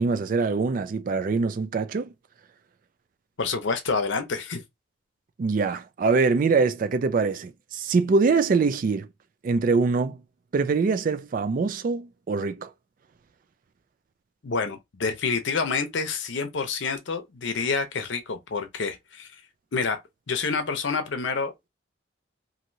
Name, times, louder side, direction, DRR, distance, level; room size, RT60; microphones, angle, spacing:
voice 1, 0.0-2.1 5.4-9.1 9.4-10.2 10.5-12.7, right 4 dB, 45° right, 0.3 m, -24 dB
voice 2, 3.4-4.6 14.4-19.3 19.7-20.0 20.3-21.7, left 4 dB, 70° left, 0.6 m, -28 dB
3.0 x 2.6 x 2.6 m
head